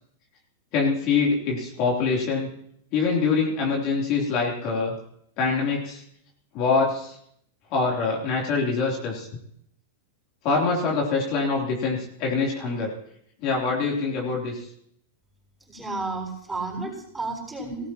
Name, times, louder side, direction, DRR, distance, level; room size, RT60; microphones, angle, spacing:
voice 1, 0.7-2.5 2.9-4.9 5.4-6.0 6.5-7.1 7.7-9.3 10.4-12.9 13.4-14.7, left 4 dB, 45° left, -2 dB, 3.4 m, -24 dB
voice 2, 15.7-17.9, right 3 dB, 10° right, -2 dB, 6.3 m, -32 dB
18.5 x 14.5 x 3.0 m, 0.70 s
hypercardioid pair, 115°, 0 cm